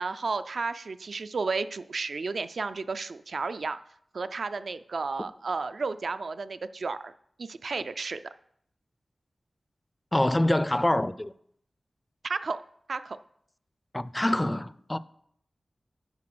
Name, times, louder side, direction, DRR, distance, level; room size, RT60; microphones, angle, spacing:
voice 1, 0.0-3.8 4.1-7.1 7.4-8.2 12.2-12.6 12.9-13.2, right 4 dB, 75° right, 0.3 m, -32 dB
voice 2, 10.1-11.3 13.9-15.0, left 1 dB, 20° left, 0.3 m, -25 dB
10.5 x 4.2 x 6.1 m
wide cardioid pair, 65°, 0 cm